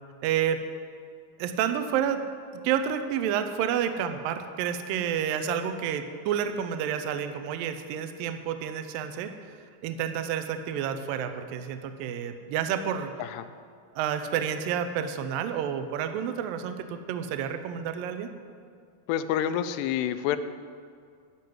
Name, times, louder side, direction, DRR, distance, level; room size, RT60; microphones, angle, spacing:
voice 1, 0.2-0.6 1.4-2.2 2.6-13.1 14.0-18.3, right 8 dB, 80° right, 8 dB, 2.1 m, -30 dB
voice 2, 19.1-20.4, left 10 dB, 90° left, 11 dB, 2.7 m, -28 dB
13.0 x 5.9 x 9.3 m, 2.2 s
omnidirectional pair, 4.8 m